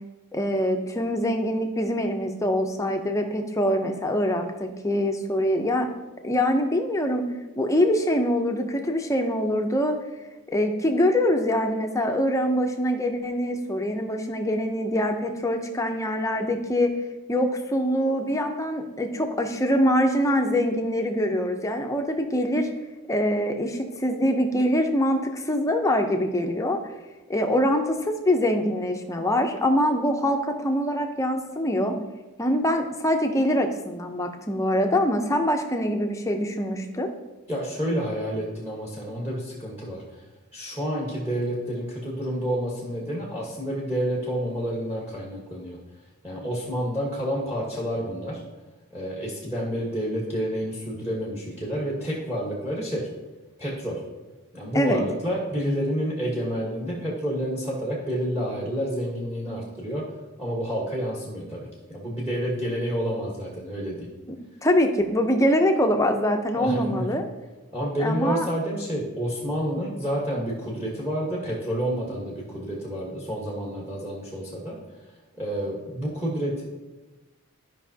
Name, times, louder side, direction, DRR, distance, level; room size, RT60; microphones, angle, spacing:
voice 1, 0.3-5.9 6.2-7.2 7.6-10.0 10.5-16.9 17.3-22.7 23.1-26.8 27.3-31.9 32.4-37.1 54.7-55.0 64.6-67.3 68.0-68.5, equal, 15° left, 4 dB, 0.5 m, -24 dB
voice 2, 37.5-40.2 40.5-45.8 46.2-48.4 48.9-53.1 53.6-54.0 54.5-60.0 60.4-64.1 66.5-67.1 67.7-74.7 75.4-76.6, equal, 10° right, -3 dB, 1.2 m, -29 dB
12.5 x 5.3 x 2.8 m, 1.1 s
head